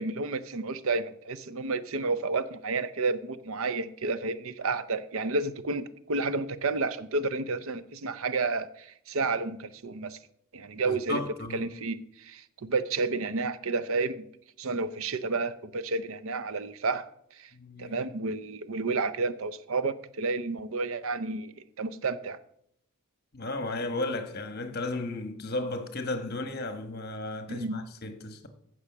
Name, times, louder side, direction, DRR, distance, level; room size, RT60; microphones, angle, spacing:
voice 1, 0.0-10.2 10.5-11.2 11.5-14.2 14.6-17.1 17.4-17.5 17.8-22.4 27.5-27.8, right 3 dB, 65° right, 0.6 m, -31 dB
voice 2, 10.8-11.7 17.5-18.0 23.3-28.5, left 2 dB, 45° left, 1.3 m, -34 dB
15.0 x 6.3 x 6.0 m
head